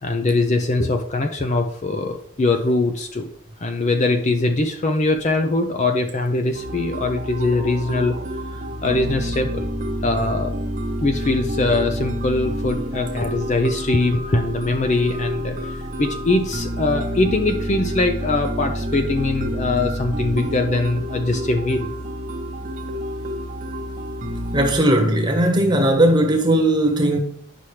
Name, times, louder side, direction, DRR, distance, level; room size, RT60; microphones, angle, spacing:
voice 1, 0.0-3.3 3.6-8.2 8.8-9.7 10.0-10.5 11.0-21.9, left 2 dB, 35° left, 0.5 m, -22 dB
sound 1, 6.5-24.7, equal, 35° right, 0.8 m, -29 dB
voice 2, 24.5-27.2, right 1 dB, 20° right, 1.1 m, -18 dB
10.0 x 5.7 x 3.2 m
head